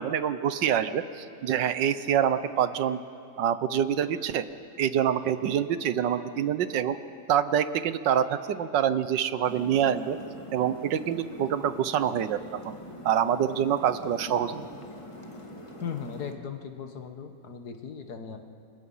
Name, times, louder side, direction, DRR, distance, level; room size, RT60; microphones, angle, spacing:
voice 1, 0.0-3.0 3.4-4.4 4.8-7.0 7.3-10.2 10.5-12.7 13.0-14.9, right 9 dB, 75° right, 13 dB, 1.5 m, -26 dB
sound 1, 9.4-16.3, left 1 dB, 15° left, 1.7 m, -44 dB
voice 2, 15.8-18.4, left 6 dB, 60° left, 6 dB, 1.8 m, -37 dB
29.5 x 26.0 x 5.6 m, 2.4 s
omnidirectional pair, 2.0 m